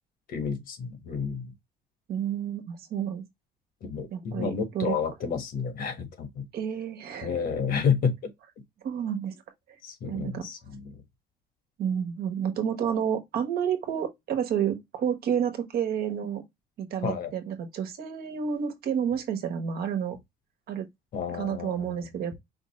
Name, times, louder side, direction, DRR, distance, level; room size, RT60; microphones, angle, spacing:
voice 1, 0.3-1.5 3.8-6.4 7.2-8.3 9.8-10.9 17.0-17.3 21.1-22.3, left 6 dB, 60° left, 1.5 m, -30 dB
voice 2, 2.1-3.2 4.1-4.9 6.5-7.4 8.8-9.4 10.1-10.4 11.8-16.4 16.8-20.2 20.7-20.8 21.3-22.3, right 8 dB, 65° right, 1.2 m, -30 dB
5.1 x 2.5 x 3.1 m
cardioid pair, 110°, 17 cm